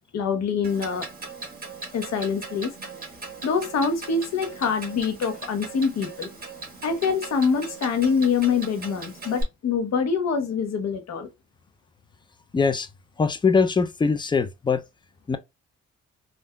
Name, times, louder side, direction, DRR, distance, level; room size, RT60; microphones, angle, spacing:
voice 1, 0.1-1.1 1.9-2.7 3.4-6.3 6.8-11.3, left 5 dB, 60° left, 1.0 m, -25 dB
Clock, 0.6-9.4, right 3 dB, 30° right, 1.5 m, -39 dB
voice 2, 12.5-12.9 13.2-14.8 15.3-15.4, left 5 dB, 15° left, 0.4 m, -22 dB
3.5 x 2.6 x 2.2 m
cardioid pair, 90°, 30 cm